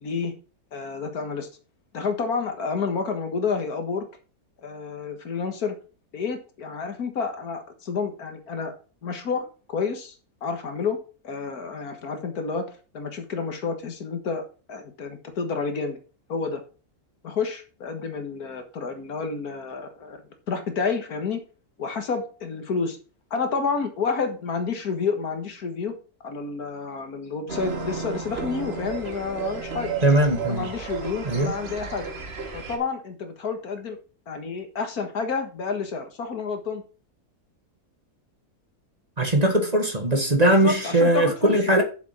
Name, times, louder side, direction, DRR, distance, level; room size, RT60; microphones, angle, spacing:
voice 1, 0.0-0.3 0.7-1.5 1.9-4.1 4.6-5.8 6.1-8.7 9.0-10.2 10.4-11.0 11.2-16.0 16.3-16.6 17.2-20.2 20.5-21.4 21.8-23.0 23.3-25.9 26.2-30.0 30.5-32.1 32.5-34.0 34.3-36.8 40.5-41.8, left 5 dB, 80° left, 2.1 m, -29 dB
sound 1, 27.5-32.8, right 5 dB, 45° right, 1.6 m, -33 dB
voice 2, 30.0-30.7 31.3-31.5 39.2-41.8, right 1 dB, 25° right, 1.7 m, -20 dB
7.1 x 6.8 x 5.9 m
omnidirectional pair, 1.6 m